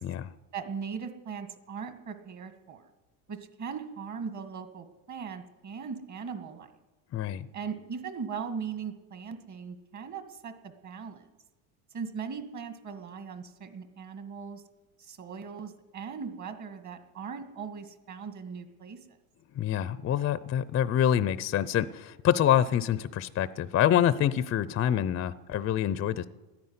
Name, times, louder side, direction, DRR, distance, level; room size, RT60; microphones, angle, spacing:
voice 1, 0.5-2.8 3.3-6.7 7.5-11.2 11.9-14.6 15.0-19.0, right 6 dB, 40° right, 8 dB, 2.1 m, -39 dB
voice 2, 7.1-7.5 19.5-26.2, left 10 dB, 30° left, 16 dB, 0.5 m, -26 dB
13.0 x 10.5 x 9.6 m, 1.2 s
supercardioid pair, 105°, 47 cm